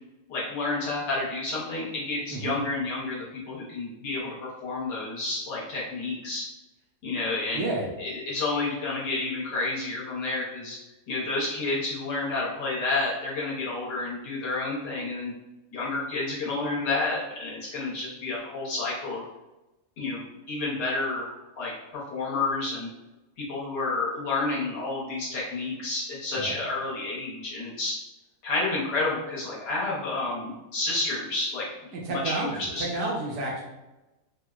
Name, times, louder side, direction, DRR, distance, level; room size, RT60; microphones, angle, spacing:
voice 1, 0.3-6.4 7.0-7.7 8.0-10.8 11.1-15.3 15.7-19.2 20.0-22.9 23.4-28.0 28.4-31.7 32.1-32.8, left 3 dB, 70° left, -5 dB, 1.4 m, -30 dB
voice 2, 7.5-7.9 26.3-26.5 32.0-33.6, right 2 dB, 70° right, -3 dB, 1.1 m, -30 dB
4.3 x 2.0 x 2.3 m, 1.0 s
omnidirectional pair, 2.0 m